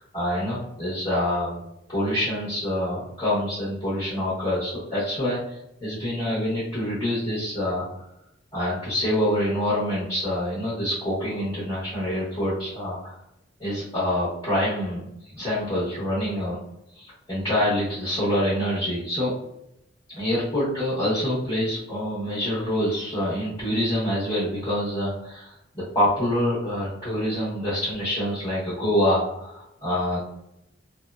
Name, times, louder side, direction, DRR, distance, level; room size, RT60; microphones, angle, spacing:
voice 1, 0.0-1.6 1.9-8.1 8.5-13.1 13.6-16.6 16.9-19.3 20.1-30.2, left 1 dB, 20° left, -11 dB, 0.8 m, -26 dB
2.7 x 2.1 x 2.3 m, 0.84 s
head